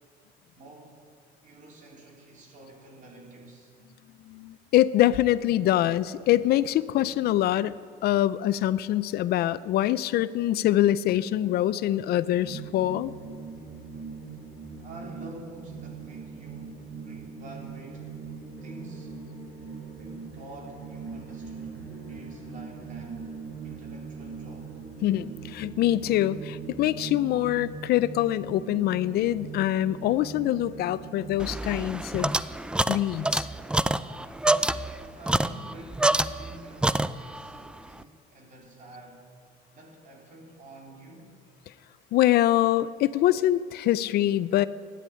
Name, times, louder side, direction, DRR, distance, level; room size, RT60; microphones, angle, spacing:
voice 1, 0.5-1.1 1.4-3.7 14.8-18.1 18.6-19.3 20.0-21.8 22.1-24.7 34.8-39.3 39.7-41.3, right 2 dB, 50° right, 0 dB, 3.5 m, -48 dB
voice 2, 4.3-7.7 8.0-13.1 25.0-32.4 32.9-33.5 42.1-44.7, left 13 dB, 70° left, 16 dB, 0.5 m, -24 dB
sound 1, 12.4-31.4, right 5 dB, 70° right, 4.9 m, -41 dB
sound 2, 31.4-36.6 36.8-37.5, right 2 dB, 5° right, 0.4 m, -26 dB
13.0 x 10.0 x 8.7 m, 2.1 s
cardioid pair, 110°, 17 cm